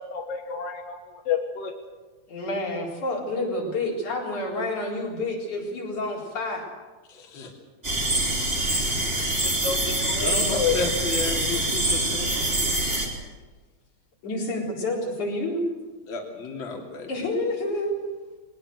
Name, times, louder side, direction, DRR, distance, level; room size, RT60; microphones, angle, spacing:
voice 1, 0.1-1.7 9.4-10.8, left 8 dB, 60° left, 4 dB, 2.2 m, -29 dB
voice 2, 2.3-6.6 12.2-12.6 14.2-15.6 17.1-18.0, left 1 dB, 80° left, -2 dB, 5.8 m, -29 dB
voice 3, 7.1-7.5 10.2-12.5 16.1-17.1, left 3 dB, 40° left, 0 dB, 3.4 m, -32 dB
sound 1, 7.8-13.1, right 1 dB, 20° right, 3.4 m, -25 dB
21.0 x 19.0 x 8.0 m, 1.3 s
omnidirectional pair, 3.4 m